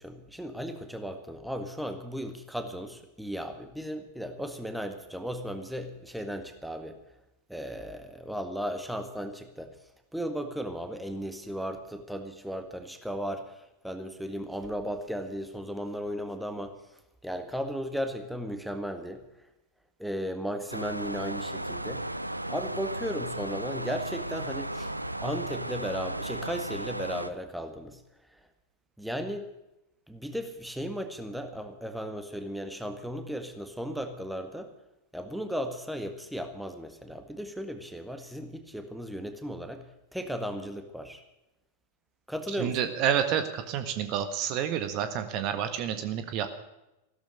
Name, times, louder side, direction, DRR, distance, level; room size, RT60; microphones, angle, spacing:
voice 1, 0.0-7.0 7.5-9.7 10.1-16.8 17.2-19.2 20.0-22.1 22.5-24.9 25.2-28.0 28.3-28.4 29.0-29.5 30.1-34.7 35.1-39.9 40.1-41.2 42.3-42.9, equal, ahead, 7 dB, 1.9 m, -35 dB
sound 1, 20.7-27.3, right 1 dB, 85° right, 0.8 m, -35 dB
voice 2, 42.6-46.5, right 9 dB, 40° right, 9 dB, 1.5 m, -29 dB
15.5 x 13.5 x 6.5 m, 0.91 s
figure-of-eight pair, 90°, 0 cm